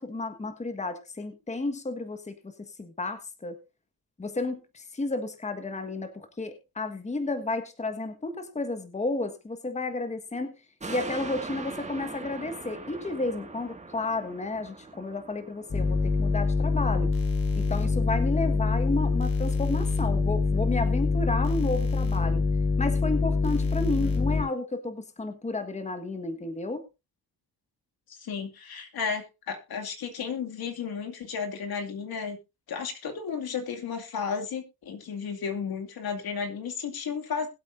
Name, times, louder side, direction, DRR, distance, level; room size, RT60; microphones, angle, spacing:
voice 1, 0.0-3.6 4.2-10.5 10.9-17.1 17.5-22.4 22.8-26.8, left 2 dB, 20° left, 8 dB, 1.5 m, -32 dB
sound 1, 10.8-17.5 17.9-18.0, right 3 dB, 20° right, 2.0 m, -41 dB
sound 2, 15.7-24.4, left 4 dB, 40° left, 7.9 m, -25 dB
voice 2, 23.8-24.2 28.2-32.4 32.7-37.5, left 6 dB, 65° left, 4 dB, 2.4 m, -33 dB
21.0 x 8.2 x 2.6 m, 0.26 s
cardioid pair, 115°, 39 cm